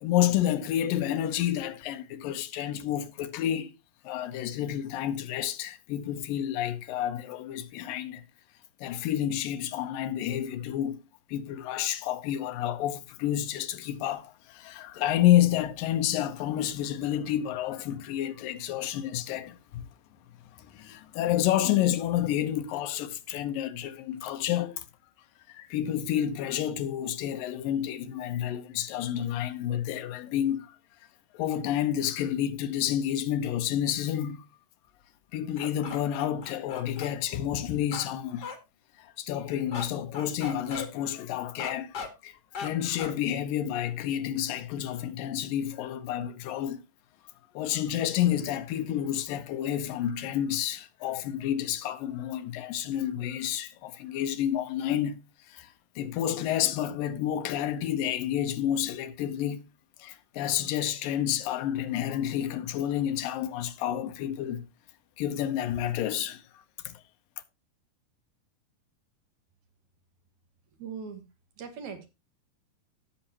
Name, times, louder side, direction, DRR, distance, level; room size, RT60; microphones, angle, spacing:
voice 1, 0.0-3.7 4.0-8.2 8.8-11.0 11.3-19.8 20.7-24.9 25.5-30.7 31.3-34.5 35.3-38.5 39.0-42.0 42.2-46.8 47.5-55.2 55.5-55.7 56.0-59.6 60.0-64.6 65.2-66.4 66.9-67.0, left 11 dB, 85° left, 2.6 m, -29 dB
sound 1, 35.6-37.1 37.9-38.1 38.4-38.6 39.7-39.9 40.1-40.9 41.6-42.1 42.5-42.7 43.0-43.2, left 5 dB, 40° left, 1.6 m, -37 dB
voice 2, 70.8-71.2 71.6-72.1, right 6 dB, 60° right, 2.8 m, -39 dB
16.5 x 6.6 x 2.9 m
omnidirectional pair, 3.9 m